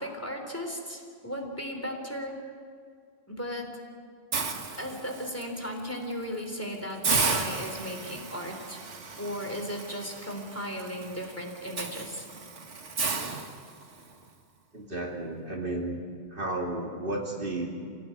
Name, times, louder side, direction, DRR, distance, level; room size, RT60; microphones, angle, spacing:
voice 1, 0.0-2.4 3.3-3.8 4.8-8.8 9.2-12.3, equal, 10° left, 2 dB, 3.6 m, -36 dB
Hiss, 4.3-5.4 5.9-6.1 6.5-6.6 7.0-14.1, right 4 dB, 65° right, 2.0 m, -33 dB
voice 2, 14.7-16.0 16.3-17.7, right 2 dB, 45° right, -1 dB, 2.9 m, -33 dB
28.5 x 17.5 x 9.6 m, 2.1 s
omnidirectional pair, 1.3 m